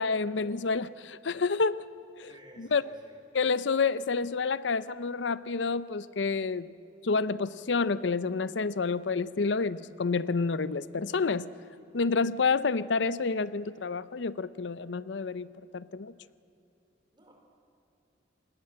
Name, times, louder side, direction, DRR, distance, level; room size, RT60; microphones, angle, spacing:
voice 1, 0.0-1.8 2.2-2.8 3.3-6.7 7.0-11.5 11.9-15.5 15.7-16.1, left 4 dB, 80° left, 16 dB, 0.6 m, -29 dB
voice 2, 2.3-3.2 17.1-17.3, right 1 dB, 25° right, 1 dB, 4.9 m, -55 dB
26.0 x 20.5 x 7.7 m, 2.8 s
head